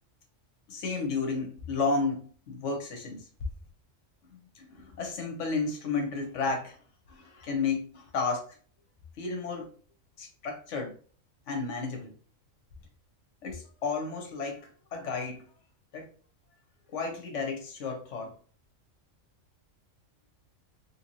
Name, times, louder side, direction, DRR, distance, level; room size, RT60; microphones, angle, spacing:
voice 1, 0.7-3.3 4.5-6.8 7.1-8.5 9.2-9.7 10.2-10.9 11.5-12.1 13.4-15.5 15.9-16.1 16.9-18.3, left 4 dB, 65° left, 3 dB, 1.1 m, -32 dB
3.3 x 2.6 x 2.9 m, 0.42 s
omnidirectional pair, 1.4 m